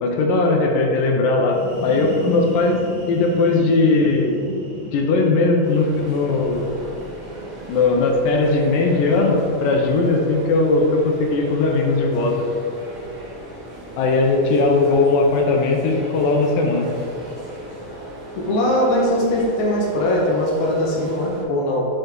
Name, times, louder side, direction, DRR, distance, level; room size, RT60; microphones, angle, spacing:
voice 1, 0.0-2.8 3.1-4.4 4.9-6.7 7.7-12.3 14.0-16.9, left 3 dB, 80° left, 1 dB, 2.3 m, -18 dB
sound 1, 1.3-9.0, equal, 60° right, 1.0 m, -36 dB
voice 2, 2.0-2.3 18.4-21.9, left 1 dB, 55° left, -4 dB, 1.5 m, -21 dB
sound 2, 5.6-21.4, right 1 dB, 45° right, 2.0 m, -37 dB
7.4 x 5.4 x 3.8 m, 2.4 s
omnidirectional pair, 4.0 m